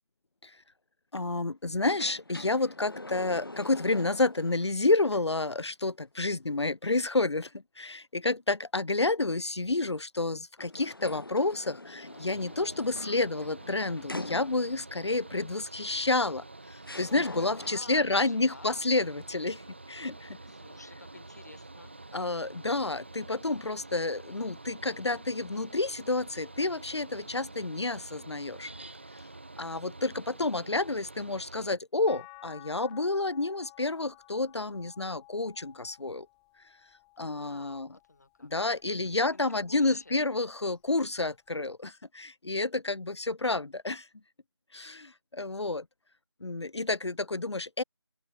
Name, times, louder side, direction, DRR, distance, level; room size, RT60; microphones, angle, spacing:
voice 1, 1.1-7.5 7.8-19.6 19.9-20.4 22.1-28.7 29.6-36.3 37.2-37.9 38.4-44.1 44.7-45.8 46.4-47.8, left 2 dB, 75° left, 0.7 m, -30 dB
sound 1, 1.8-4.7 5.1-5.2 10.6-14.9 16.0-16.1 16.8-18.0, left 2 dB, 50° left, 5.9 m, -43 dB
Mechanical fan, 12.0-31.7, right 2 dB, 25° right, 1.2 m, -48 dB
voice 2, 17.4-18.9 20.5-21.9 37.2-38.5 38.9-40.2, left 2 dB, 35° left, 7.1 m, -52 dB
sound 2, 32.1-38.4 38.9-40.3 41.7-41.8, left 29 dB, 5° left, 2.8 m, -55 dB
open air
figure-of-eight pair, 175°, 15 cm